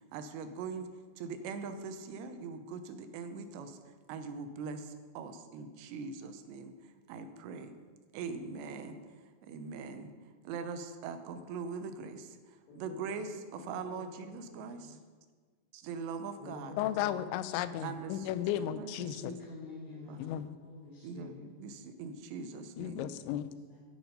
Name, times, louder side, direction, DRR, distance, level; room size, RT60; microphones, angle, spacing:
voice 1, 0.1-0.9 1.2-3.8 4.1-6.7 7.1-7.7 8.1-9.0 9.4-10.1 10.4-12.4 12.8-15.0 15.7-16.8 17.8-18.3 18.5-19.4 20.1-20.2 21.0-23.1, right 5 dB, 80° right, 8 dB, 2.9 m, -41 dB
voice 2, 12.7-13.2 13.6-14.2 14.5-14.8 16.4-17.2 19.0-21.5 23.7-23.8, left 4 dB, 70° left, -7 dB, 5.7 m, -48 dB
voice 3, 16.8-19.3 20.2-20.5 22.8-23.5, left 11 dB, 85° left, 13 dB, 2.9 m, -34 dB
12.0 x 9.3 x 5.4 m, 1.5 s
omnidirectional pair, 5.2 m